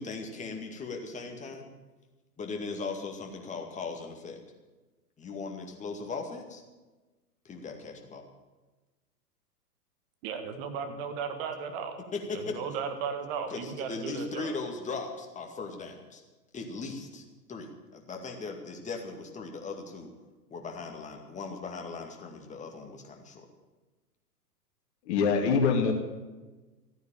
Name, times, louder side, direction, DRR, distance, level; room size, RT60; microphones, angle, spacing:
voice 1, 0.0-1.7 2.4-4.4 5.2-6.6 7.4-8.2 12.1-12.5 13.5-16.2 16.5-20.1 20.5-23.5, left 4 dB, 15° left, 3 dB, 2.2 m, -38 dB
voice 2, 10.2-12.0 12.3-14.6, right 6 dB, 35° right, 7 dB, 1.7 m, -35 dB
voice 3, 25.0-25.9, left 5 dB, 45° left, 4 dB, 2.5 m, -24 dB
14.5 x 9.4 x 8.9 m, 1.2 s
figure-of-eight pair, 115°, 47 cm